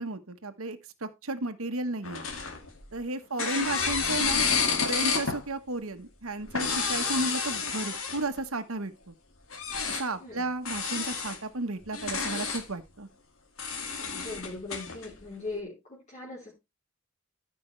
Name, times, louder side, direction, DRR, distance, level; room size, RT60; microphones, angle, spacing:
voice 1, 0.0-2.2 2.9-4.4 4.8-9.1 10.0-13.1, right 2 dB, 80° right, 1.3 m, -33 dB
sound 1, 2.0-3.0 3.4-5.4 6.4-8.4 9.5-10.1 10.6-11.4 11.8-12.6 13.6-15.1, left 5 dB, 75° left, 2.2 m, -30 dB
voice 2, 14.0-16.5, left 2 dB, 35° left, 3.5 m, -40 dB
14.0 x 6.1 x 3.2 m
head